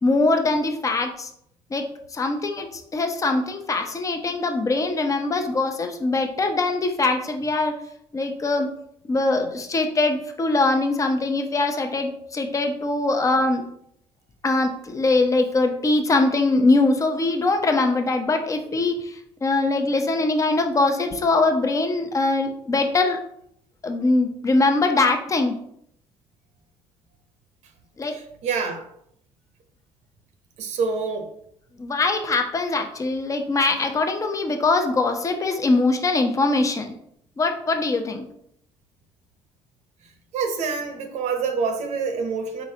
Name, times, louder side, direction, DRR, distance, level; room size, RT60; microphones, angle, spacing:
voice 1, 0.0-1.3 1.7-1.8 2.1-7.7 8.1-8.7 9.1-13.6 14.4-23.2 23.8-25.5 28.0-28.2 31.8-36.9 37.4-38.2, left 3 dB, 25° left, 5 dB, 0.6 m, -22 dB
voice 2, 28.1-28.9 30.6-31.3 40.3-42.6, right 5 dB, 75° right, 6 dB, 0.7 m, -27 dB
4.1 x 3.8 x 2.8 m, 0.71 s
cardioid pair, 85°, 12 cm